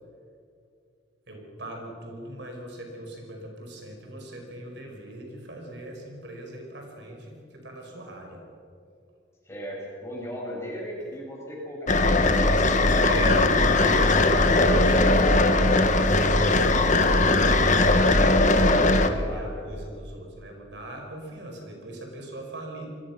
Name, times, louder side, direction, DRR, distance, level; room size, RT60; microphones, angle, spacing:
voice 1, 1.3-8.4 13.0-22.9, right 1 dB, 65° right, 1 dB, 5.3 m, -38 dB
voice 2, 9.5-12.2 19.3-19.7, equal, 15° left, -3 dB, 7.4 m, -37 dB
sound 1, 11.9-19.1, left 2 dB, 40° left, 1.5 m, -19 dB
29.0 x 22.0 x 6.2 m, 2.4 s
head